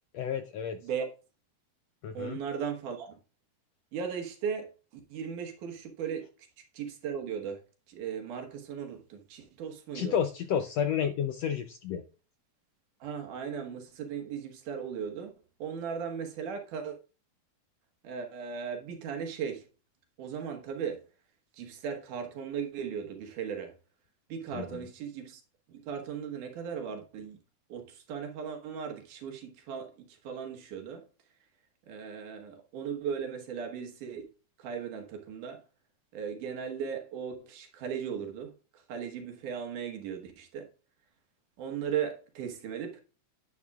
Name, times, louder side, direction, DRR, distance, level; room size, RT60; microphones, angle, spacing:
voice 1, 0.1-0.8 2.0-2.4 9.9-12.0 24.5-24.8, left 8 dB, 80° left, 1.5 m, -31 dB
voice 2, 2.1-3.2 3.9-4.7 5.1-6.3 6.7-7.6 7.9-10.2 13.0-15.3 15.6-17.0 18.0-19.6 20.2-21.0 21.6-23.7 24.3-25.4 25.8-27.4 27.7-31.0 31.9-34.2 34.6-35.6 36.1-38.5 38.9-40.7 41.6-43.0, right 7 dB, 80° right, 2.8 m, -37 dB
10.0 x 9.5 x 2.4 m
omnidirectional pair, 3.6 m